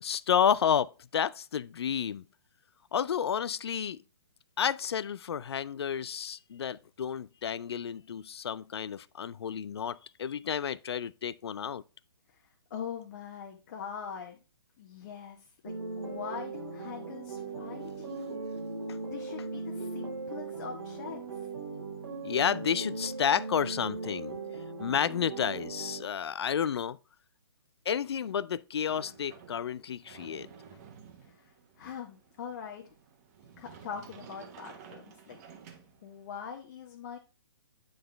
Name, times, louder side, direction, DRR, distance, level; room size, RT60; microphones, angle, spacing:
voice 1, 0.0-2.2 2.9-4.0 4.6-11.8 18.2-18.5 18.9-19.0 22.2-24.4 24.8-27.0 27.9-30.5, left 8 dB, 80° left, 0.4 m, -31 dB
voice 2, 12.7-14.4 14.8-18.5 19.1-21.5 31.2-32.8 33.6-35.4 36.0-37.2, left 7 dB, 45° left, 1.0 m, -42 dB
sound 1, 15.6-26.0, right 3 dB, 90° right, 1.4 m, -39 dB
Sliding door, 28.9-36.4, right 7 dB, 35° right, 1.1 m, -53 dB
9.1 x 4.0 x 3.3 m
hypercardioid pair, 140°, 14 cm